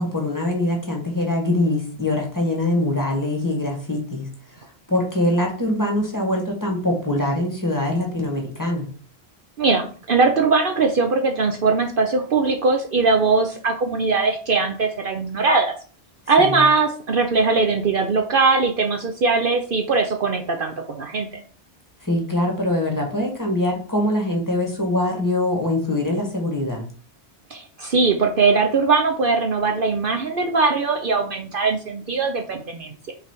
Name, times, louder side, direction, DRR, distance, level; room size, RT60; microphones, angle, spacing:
voice 1, 0.0-4.2 4.9-8.9 16.4-16.6 22.0-26.8, left 1 dB, 15° left, 1 dB, 1.9 m, -23 dB
voice 2, 9.6-15.7 16.3-21.3 27.5-33.1, right 4 dB, 55° right, 4 dB, 0.9 m, -20 dB
5.8 x 4.1 x 4.5 m, 0.41 s
omnidirectional pair, 1.1 m